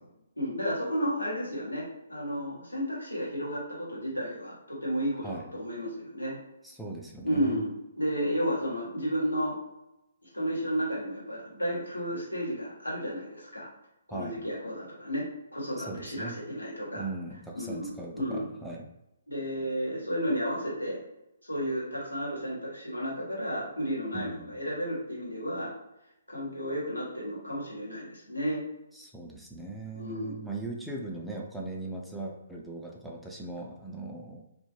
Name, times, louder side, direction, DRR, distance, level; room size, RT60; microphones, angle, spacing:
voice 1, 0.4-6.4 7.2-9.6 10.2-13.7 14.1-17.1 17.5-17.9 18.1-18.5 19.3-21.0 21.4-25.7 26.3-28.6 29.9-30.3, equal, 90° left, -5 dB, 1.1 m, -32 dB
voice 2, 6.6-7.6 14.1-14.4 15.8-16.4 16.9-18.9 24.1-24.5 28.9-34.4, right 2 dB, ahead, -2 dB, 0.3 m, -39 dB
2.2 x 2.0 x 3.1 m, 0.90 s
figure-of-eight pair, 130°, 0 cm